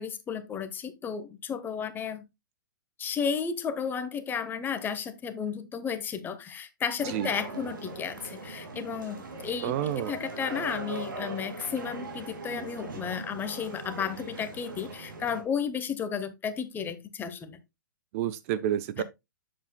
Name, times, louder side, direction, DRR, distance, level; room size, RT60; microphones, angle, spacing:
voice 1, 0.0-2.2 3.0-17.6 19.0-19.1, left 7 dB, 20° left, 0.9 m, -33 dB
sound 1, 7.0-15.4, right 2 dB, 75° right, 2.2 m, -40 dB
voice 2, 9.6-10.1 18.1-19.0, right 11 dB, 45° right, 0.5 m, -29 dB
7.4 x 7.3 x 2.2 m
hypercardioid pair, 115°, 11 cm